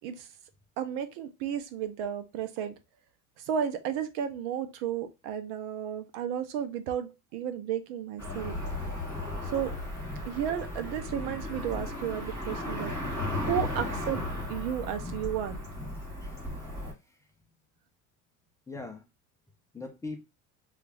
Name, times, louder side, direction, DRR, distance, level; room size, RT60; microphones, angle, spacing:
voice 1, 0.8-2.8 3.4-8.6 9.4-9.7 10.2-12.9 13.4-14.2 14.5-15.6, right 9 dB, 65° right, 0.7 m, -33 dB
Cricket / Motor vehicle (road), 8.2-16.9, left 1 dB, 10° right, 2.4 m, -35 dB
voice 2, 12.6-13.7 16.2-16.5 17.1-17.2 18.7-19.1 19.7-20.2, left 3 dB, 10° left, 0.4 m, -43 dB
3.5 x 2.4 x 3.2 m
supercardioid pair, 130°, 36 cm